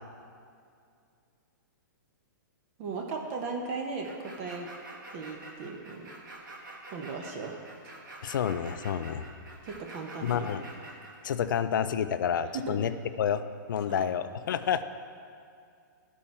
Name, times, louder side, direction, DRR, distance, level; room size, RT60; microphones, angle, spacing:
voice 1, 2.8-4.7 5.1-6.1 6.9-7.6 9.6-10.5 12.5-12.9 13.8-14.1, right 4 dB, 35° right, 2 dB, 0.9 m, -37 dB
sound 1, 4.0-11.1, right 2 dB, 75° right, 1.7 m, -46 dB
voice 2, 8.2-9.2 10.2-10.6 11.2-12.9 13.2-13.4 13.7-14.8, left 8 dB, 75° left, 11 dB, 0.4 m, -29 dB
12.5 x 4.6 x 4.3 m, 2.4 s
hypercardioid pair, 150°, 11 cm